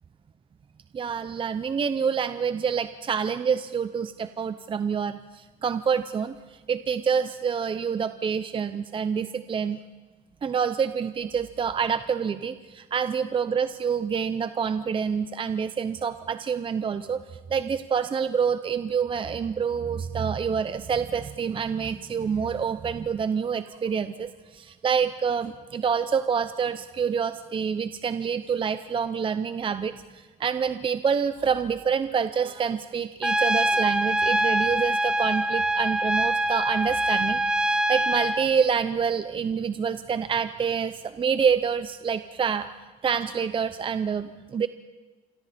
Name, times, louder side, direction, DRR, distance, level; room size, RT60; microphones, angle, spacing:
voice 1, 0.9-9.8 10.4-17.2 17.5-42.7 43.0-44.7, right 6 dB, 30° right, 11 dB, 0.7 m, -27 dB
Trumpet, 33.2-38.4, right 1 dB, 5° right, 1.2 m, -24 dB
27.5 x 23.5 x 4.3 m, 1.3 s
cardioid pair, 110°, 17 cm